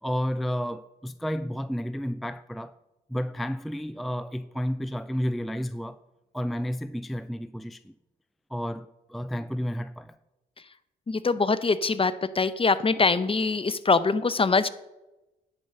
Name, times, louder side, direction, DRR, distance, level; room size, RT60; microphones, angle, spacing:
voice 1, 0.0-2.7 3.1-6.0 6.3-7.9 8.5-10.2, equal, ahead, 0.3 m, -31 dB
voice 2, 11.1-14.7, left 4 dB, 30° left, 0.7 m, -23 dB
10.0 x 5.5 x 6.6 m
supercardioid pair, 50°, 19 cm